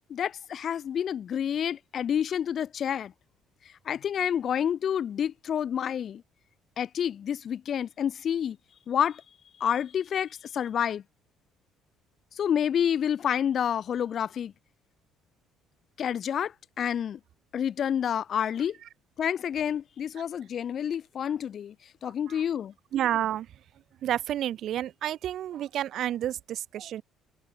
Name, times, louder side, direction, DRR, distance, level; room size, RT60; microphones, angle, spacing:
voice 1, 0.1-3.1 3.8-6.2 6.8-8.6 8.9-9.2 9.6-11.0 12.4-14.5 16.0-17.2 17.5-18.7 19.2-21.7 22.0-22.7, left 9 dB, 35° left, 1.3 m, -29 dB
voice 2, 22.9-23.5 24.0-27.0, right 11 dB, 45° right, 3.7 m, -30 dB
cardioid pair, 175°, 0 cm